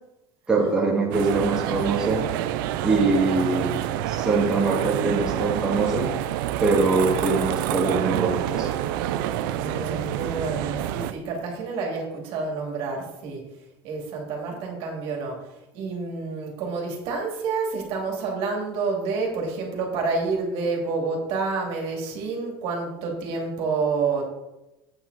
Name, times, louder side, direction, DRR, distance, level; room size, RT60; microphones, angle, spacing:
voice 1, 0.5-2.2 2.8-3.7 4.1-6.1 6.6-8.7, right 3 dB, 5° right, -5 dB, 2.0 m, -23 dB
sound 1, 1.1-11.1, right 12 dB, 85° right, 0.5 m, -27 dB
voice 2, 2.9-3.7 9.5-13.4 13.8-15.3 15.7-24.3, right 4 dB, 55° right, 0 dB, 2.6 m, -29 dB
8.5 x 7.5 x 4.1 m, 0.96 s
cardioid pair, 160°, 11 cm